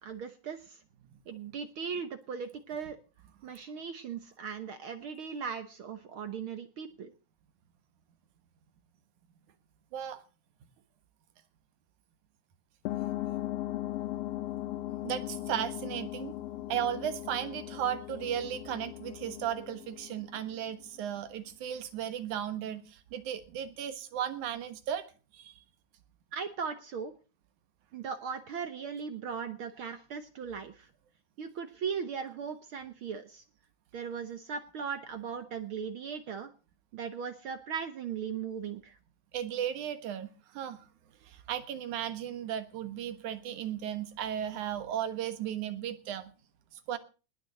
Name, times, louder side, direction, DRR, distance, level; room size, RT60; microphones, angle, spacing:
voice 1, 0.0-0.8 1.3-3.0 3.4-7.1 26.3-27.1 27.9-30.9 31.4-33.4 33.9-36.5 36.9-39.0, right 6 dB, 60° right, 9 dB, 1.5 m, -38 dB
sound 1, 12.9-21.0, left 15 dB, 65° left, 1.7 m, -38 dB
voice 2, 15.0-16.4 16.7-25.1 25.3-25.5 39.3-40.3 40.5-40.9 41.2-46.3 46.9-47.0, right 10 dB, 80° right, 11 dB, 2.9 m, -35 dB
19.5 x 6.7 x 7.8 m, 0.36 s
omnidirectional pair, 3.4 m